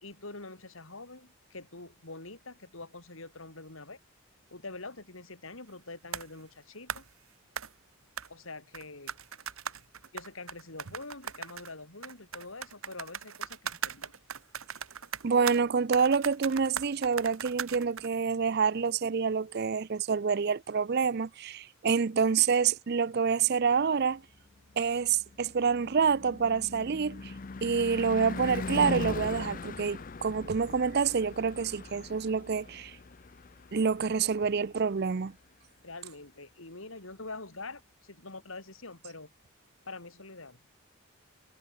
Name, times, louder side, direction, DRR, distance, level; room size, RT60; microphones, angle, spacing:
voice 1, 0.0-4.0 4.5-7.1 8.3-9.2 10.1-14.1 35.8-39.3 39.9-40.6, left 3 dB, 70° left, 3.8 m, -45 dB
sound 1, 6.1-6.3 6.9-7.1 7.6-7.7 8.2-8.3 8.7-11.7 12.0-15.6 15.9-18.1, right 7 dB, 75° right, 1.8 m, -38 dB
voice 2, 15.2-24.2 24.8-27.3 27.6-33.0 33.7-35.3, right 6 dB, 50° right, 0.5 m, -27 dB
Car passing by / Truck / Engine, 24.7-35.0, left 3 dB, 40° left, 0.6 m, -40 dB
head